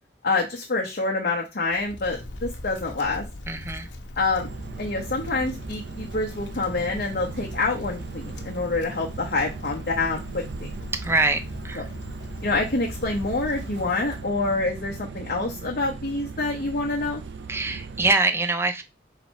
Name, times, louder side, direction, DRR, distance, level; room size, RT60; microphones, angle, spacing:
voice 1, 0.2-3.2 4.2-4.5 4.8-10.7 11.8-11.9 12.4-17.2, left 3 dB, 55° left, 0.9 m, -27 dB
Wind, 1.7-14.5, left 1 dB, 90° left, 0.8 m, -40 dB
voice 2, 3.5-3.9 10.9-11.9 17.5-18.8, right 3 dB, 15° right, 0.5 m, -24 dB
sound 1, 4.4-18.1, right 4 dB, 70° right, 0.5 m, -38 dB
4.1 x 2.7 x 4.3 m
head